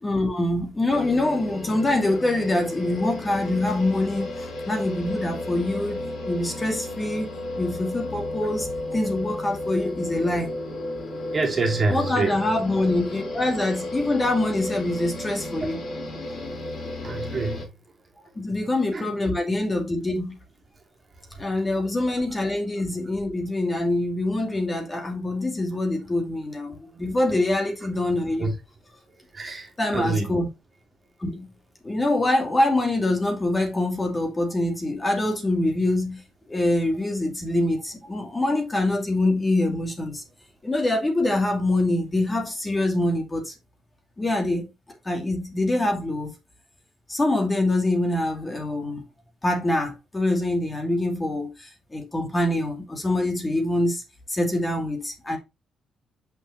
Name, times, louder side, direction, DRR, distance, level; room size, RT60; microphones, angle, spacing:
voice 1, 0.0-6.0 6.3-10.5 11.9-15.8 18.4-20.3 21.4-28.5 29.8-30.5 31.2-31.5 31.8-36.2 36.5-40.2 40.6-43.5 44.2-44.7 45.0-46.3 47.1-49.0 49.4-54.0 54.3-55.4, left 1 dB, 20° left, 2.2 m, -25 dB
sound 1, 0.9-17.7, left 1 dB, 50° left, 4.1 m, -33 dB
voice 2, 11.3-12.4 15.6-15.7 17.0-17.7 18.9-19.1 28.4-28.5 29.3-30.4, right 3 dB, 40° right, 2.5 m, -26 dB
6.1 x 5.4 x 3.1 m
cardioid pair, 90°, 0 cm